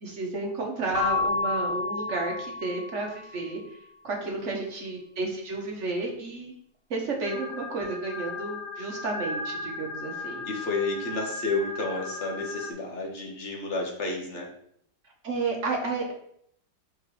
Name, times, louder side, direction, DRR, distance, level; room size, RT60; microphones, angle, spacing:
voice 1, 0.0-3.8 4.0-6.5 6.9-10.5 15.2-16.1, right 3 dB, 45° right, 1 dB, 1.2 m, -32 dB
Keyboard (musical) / Bell, 0.9-3.4, left 4 dB, 90° left, 1.6 m, -30 dB
voice 2, 4.2-4.6 10.4-14.5, left 3 dB, 45° left, 0 dB, 1.2 m, -31 dB
sound 1, 7.2-12.7, left 3 dB, 70° left, 1.2 m, -37 dB
5.3 x 3.9 x 4.9 m, 0.69 s
omnidirectional pair, 2.0 m